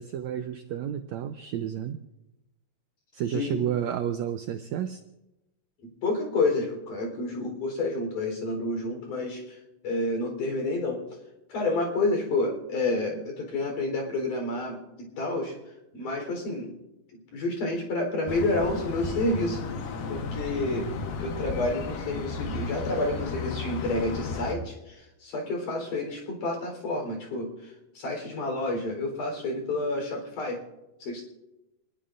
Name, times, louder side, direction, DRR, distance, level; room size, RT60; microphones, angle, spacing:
voice 1, 0.0-2.0 3.1-5.0, right 9 dB, 85° right, 8 dB, 1.6 m, -31 dB
voice 2, 3.3-3.7 5.8-9.6 9.8-11.0 11.5-15.6 15.9-16.8 17.3-19.6 20.1-20.9 21.2-30.6 31.0-31.3, left 2 dB, 65° left, 2 dB, 5.4 m, -29 dB
sound 1, 18.3-24.6, left 4 dB, 80° left, 3.0 m, -34 dB
27.0 x 20.0 x 2.6 m, 0.96 s
omnidirectional pair, 4.0 m